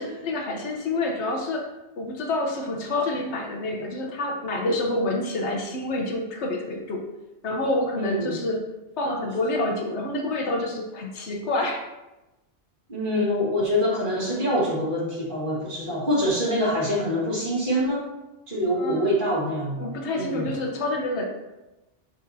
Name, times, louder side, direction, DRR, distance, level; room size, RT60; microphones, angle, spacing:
voice 1, 0.0-1.7 2.0-7.0 7.4-8.6 9.0-11.8 18.8-19.2 19.8-21.2, left 2 dB, 75° left, 1 dB, 1.3 m, -28 dB
voice 2, 7.9-8.4 12.9-18.1 18.5-19.8 20.2-20.5, equal, 45° right, -6 dB, 2.1 m, -25 dB
7.3 x 6.1 x 2.8 m, 1.0 s
omnidirectional pair, 1.2 m